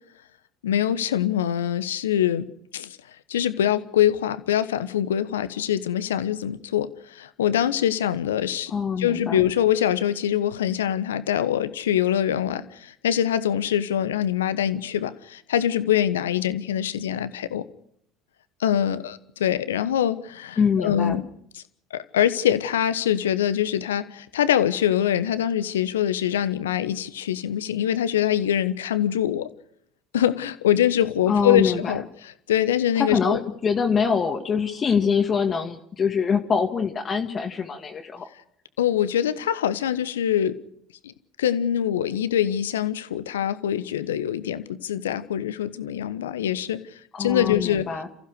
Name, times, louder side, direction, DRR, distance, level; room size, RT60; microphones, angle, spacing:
voice 1, 0.6-2.5 2.7-3.0 3.3-8.7 9.0-17.6 18.6-21.2 21.5-21.6 21.9-29.5 30.1-33.4 38.8-40.5 41.0-41.1 41.4-46.8 47.2-47.9, left 10 dB, 75° left, 14 dB, 1.1 m, -24 dB
voice 2, 8.7-9.5 20.6-21.2 31.3-31.9 33.0-38.3 47.1-48.1, left 6 dB, 35° left, 4 dB, 2.1 m, -24 dB
29.5 x 15.0 x 6.5 m, 0.70 s
figure-of-eight pair, 65°, 0 cm